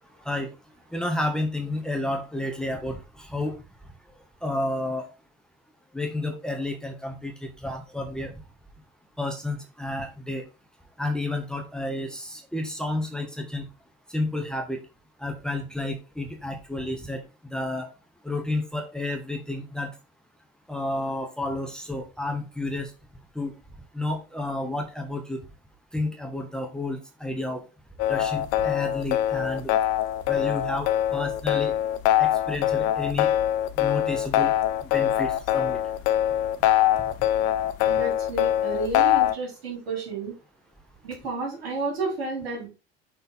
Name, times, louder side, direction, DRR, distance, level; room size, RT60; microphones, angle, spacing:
voice 1, 0.9-3.6 4.4-5.1 5.9-8.3 9.2-10.4 11.0-13.6 14.1-14.8 15.2-17.2 17.5-17.9 18.2-19.9 20.7-22.9 23.3-23.5 23.9-25.4 25.9-27.6 28.1-29.7 30.3-31.7 32.2-33.3 33.8-34.5 34.9-35.8, left 2 dB, ahead, 3 dB, 1.4 m, -31 dB
sound 1, 28.0-39.4, left 12 dB, 50° left, 0.6 m, -23 dB
voice 2, 37.8-40.4 41.0-42.7, right 3 dB, 70° right, -2 dB, 3.7 m, -31 dB
6.7 x 4.2 x 4.1 m, 0.29 s
figure-of-eight pair, 65°, 31 cm